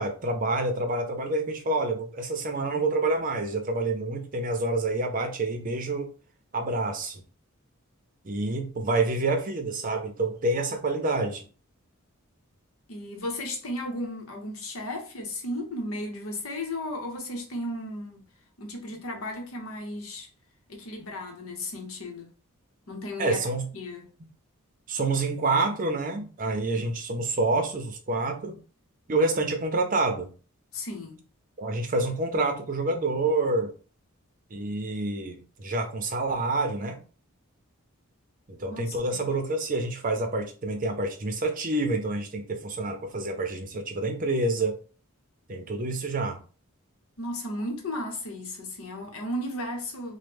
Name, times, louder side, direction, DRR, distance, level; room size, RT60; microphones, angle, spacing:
voice 1, 0.0-6.1 6.5-7.2 8.2-11.4 21.0-21.1 23.2-23.7 24.9-28.6 29.1-30.3 31.6-33.7 34.5-37.0 38.5-44.8 45.5-46.4, right 2 dB, 40° right, 0.6 m, -28 dB
voice 2, 12.9-18.2 18.6-20.3 20.7-22.3 22.9-23.4 23.7-24.1 30.7-31.2 38.7-39.3 47.2-50.2, left 1 dB, 75° left, 0.9 m, -35 dB
3.1 x 2.1 x 3.3 m
head